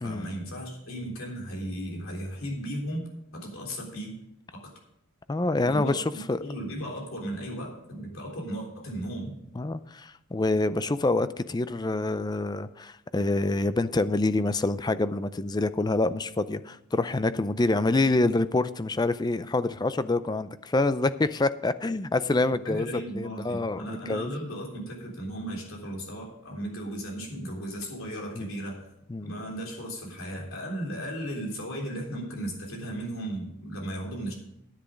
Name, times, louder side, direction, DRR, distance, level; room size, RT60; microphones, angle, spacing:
voice 1, 0.0-3.1 3.3-4.2 4.5-4.7 5.5-5.9 6.4-9.4 22.6-28.9 29.2-34.3, right 1 dB, 65° left, -1 dB, 3.5 m, -36 dB
voice 2, 5.3-6.4 9.6-24.3 28.4-28.5 29.1-29.3, left 2 dB, 20° left, 13 dB, 0.4 m, -26 dB
10.0 x 10.0 x 5.1 m, 0.82 s
head